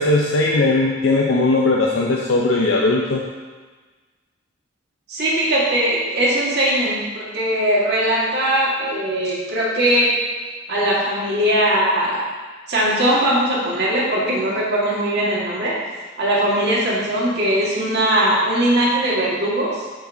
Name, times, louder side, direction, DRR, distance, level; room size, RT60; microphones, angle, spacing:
voice 1, 0.0-3.2, left 2 dB, 80° left, -1 dB, 0.5 m, -18 dB
voice 2, 5.1-10.1 10.7-12.2 12.7-15.7 16.2-19.8, right 1 dB, 55° right, -6 dB, 1.7 m, -20 dB
8.6 x 4.9 x 2.7 m, 1.4 s
head